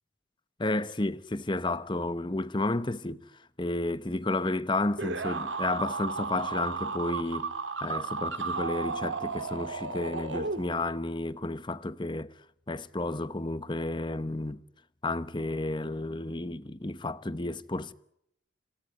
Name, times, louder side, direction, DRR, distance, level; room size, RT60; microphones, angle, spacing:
voice 1, 0.6-3.2 3.6-7.5 7.8-12.3 12.7-14.6 15.0-17.9, left 2 dB, 25° left, 0.9 m, -32 dB
sound 1, 5.0-11.0, right 4 dB, 70° right, 2.1 m, -34 dB
27.5 x 17.0 x 9.6 m
head